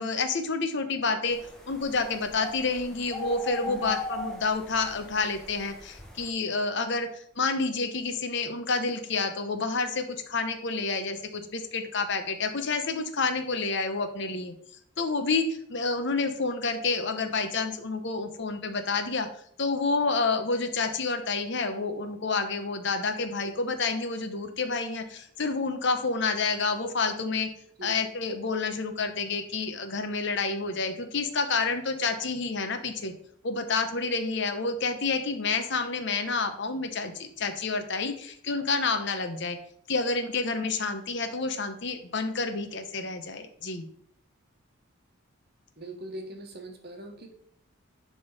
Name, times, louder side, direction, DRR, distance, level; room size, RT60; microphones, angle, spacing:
voice 1, 0.0-1.4 1.7-14.5 15.0-19.3 19.6-27.5 27.8-33.1 33.4-39.6 39.9-43.9, left 4 dB, 55° left, 8 dB, 0.8 m, -29 dB
sound 1, 1.3-6.3, left 2 dB, 5° left, 1.0 m, -39 dB
voice 2, 3.6-3.9 27.8-27.9 45.8-47.3, right 1 dB, 45° right, 4 dB, 1.2 m, -41 dB
10.5 x 3.6 x 4.0 m, 0.67 s
head